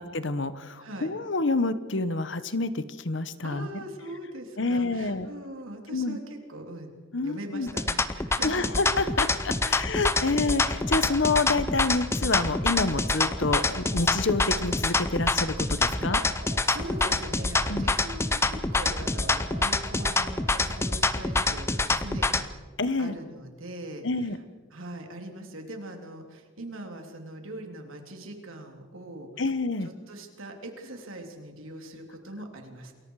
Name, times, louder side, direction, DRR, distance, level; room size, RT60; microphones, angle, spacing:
voice 1, 0.0-3.7 4.6-5.3 5.9-6.2 7.1-7.7 8.4-16.2 17.7-17.9 22.8-23.2 24.0-24.4 29.4-29.9, left 3 dB, 60° left, 13 dB, 1.1 m, -28 dB
voice 2, 0.8-1.1 3.4-6.9 7.2-8.7 9.7-10.0 16.7-22.5 23.0-24.4 24.7-29.3 29.8-32.9, right 1 dB, 80° right, 3 dB, 3.4 m, -41 dB
sound 1, 7.7-22.5, left 3 dB, 15° left, 0.7 m, -26 dB
sound 2, 8.9-21.0, right 1 dB, 45° right, 1.7 m, -43 dB
28.0 x 22.0 x 4.9 m, 1.4 s
head